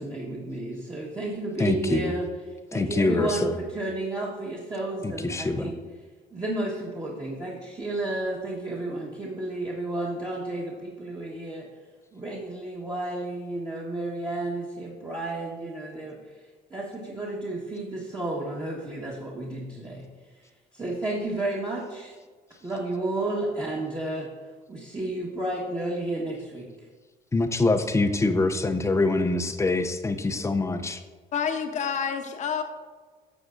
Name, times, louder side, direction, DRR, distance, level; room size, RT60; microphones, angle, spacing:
voice 1, 0.0-2.3 2.7-5.8 6.3-11.7 12.1-16.2 16.7-20.1 20.7-22.2 22.6-24.3 24.7-26.7, right 2 dB, 20° right, -4 dB, 1.4 m, -32 dB
voice 2, 1.6-2.1 2.7-3.5 5.0-5.7 27.3-31.0, left 3 dB, 15° left, 8 dB, 0.6 m, -25 dB
voice 3, 31.3-32.6, left 7 dB, 45° left, 5 dB, 0.9 m, -28 dB
12.5 x 6.9 x 2.6 m, 1.4 s
cardioid pair, 110°, 17 cm